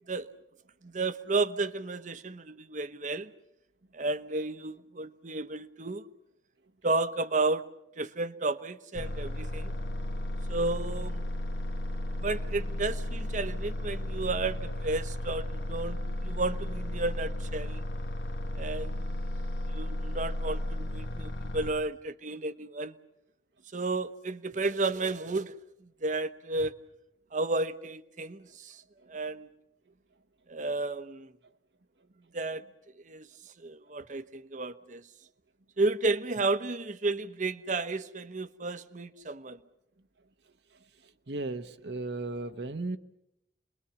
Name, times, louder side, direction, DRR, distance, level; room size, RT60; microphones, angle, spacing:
voice 1, 0.8-3.3 3.9-6.1 6.8-7.7 8.0-9.7 10.5-11.2 12.2-17.8 18.6-18.9 19.7-22.9 23.7-25.5 25.8-26.7 27.3-28.8 29.1-29.5 30.5-31.3 32.3-32.6 33.0-33.3 33.6-35.0 35.8-39.6, right 3 dB, 45° right, 0.9 m, -32 dB
sound 1, 8.9-21.7, left 1 dB, 65° left, 1.3 m, -34 dB
voice 2, 41.3-43.0, right 2 dB, 70° right, 1.0 m, -35 dB
28.0 x 21.5 x 7.1 m
head